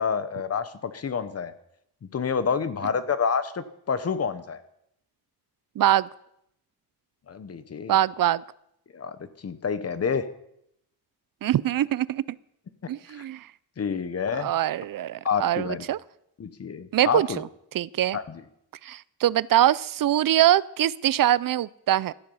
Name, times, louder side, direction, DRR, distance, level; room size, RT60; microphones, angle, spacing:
voice 1, 0.0-1.5 2.1-4.6 7.3-8.0 8.9-9.2 9.4-10.3 13.1-13.3 13.8-14.5 15.2-15.9 16.4-17.4 18.1-18.4, left 6 dB, 35° left, 12 dB, 1.0 m, -28 dB
voice 2, 5.8-6.1 7.9-8.4 11.4-12.2 12.9-13.5 14.3-16.0 16.9-17.4 17.7-18.2 18.8-22.1, right 12 dB, 55° right, 20 dB, 0.5 m, -23 dB
17.0 x 12.5 x 5.5 m, 0.77 s
wide cardioid pair, 180°, 40 cm